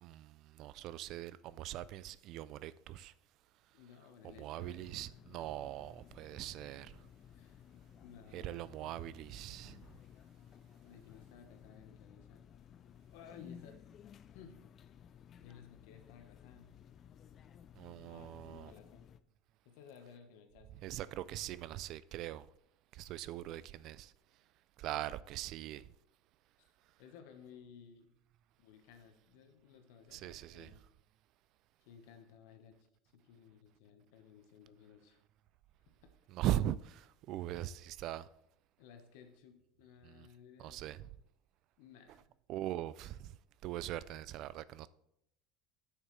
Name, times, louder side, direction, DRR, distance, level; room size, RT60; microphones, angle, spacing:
voice 1, 0.0-3.1 4.2-6.9 8.3-9.8 17.8-18.7 20.7-22.5 22.9-24.1 24.8-25.9 30.1-30.7 36.3-38.3 40.0-40.3 40.6-41.1 42.5-43.4 43.6-44.9, right 13 dB, 55° right, 0.3 m, -41 dB
voice 2, 3.7-4.8 7.3-7.6 8.0-8.6 10.8-12.4 13.1-13.8 14.3-14.6 15.4-16.7 18.0-19.1 19.6-20.8 27.0-28.1 28.6-30.8 31.8-32.8 33.1-35.2 36.0-36.1 37.3-37.4 38.8-40.8 41.8-42.3, left 7 dB, 75° left, 1.2 m, -57 dB
sound 1, 4.6-19.2, left 8 dB, 35° left, 0.4 m, -57 dB
9.2 x 6.5 x 3.3 m
supercardioid pair, 125°, 0 cm